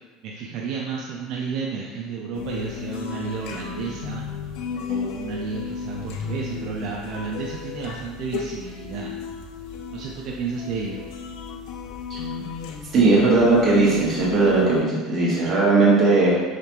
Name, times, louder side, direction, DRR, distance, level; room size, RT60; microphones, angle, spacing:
voice 1, 0.2-4.2 4.9-9.1 9.9-11.0, right 5 dB, 55° right, -1 dB, 0.4 m, -32 dB
sound 1, 2.3-14.8, left 5 dB, 65° left, 0.4 m, -34 dB
voice 2, 12.9-16.4, right 3 dB, 30° right, -6 dB, 1.5 m, -18 dB
4.9 x 3.3 x 3.0 m, 1.4 s
cardioid pair, 145°, 0 cm